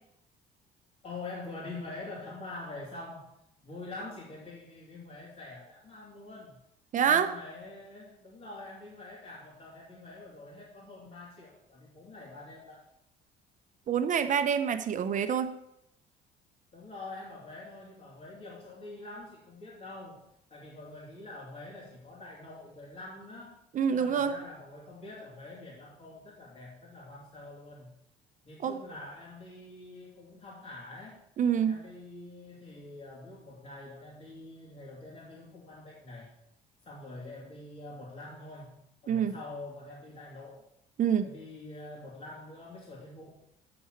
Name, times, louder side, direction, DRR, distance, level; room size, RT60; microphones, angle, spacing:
voice 1, 1.0-3.3 3.6-6.6 7.0-12.8 16.7-23.6 23.9-27.9 28.4-31.2 31.5-36.3 36.8-40.7 41.2-43.4, left 2 dB, 40° left, -6 dB, 2.9 m, -45 dB
voice 2, 6.9-7.3 13.9-15.6 23.7-24.3 28.6-28.8 31.4-31.8 39.1-39.4 41.0-41.3, right 8 dB, 50° right, 9 dB, 0.8 m, -26 dB
7.1 x 6.4 x 7.8 m, 0.78 s
cardioid pair, 110°, 17 cm